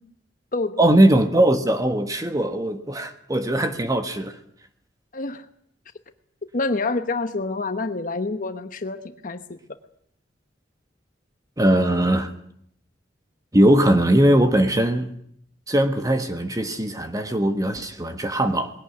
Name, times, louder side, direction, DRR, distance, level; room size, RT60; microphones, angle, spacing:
voice 1, 0.8-4.3 11.6-12.3 13.5-15.1 15.7-18.7, right 1 dB, 20° right, 1.4 m, -20 dB
voice 2, 5.1-5.5 6.5-9.6, left 3 dB, 50° left, 1.1 m, -27 dB
20.5 x 17.5 x 9.6 m
head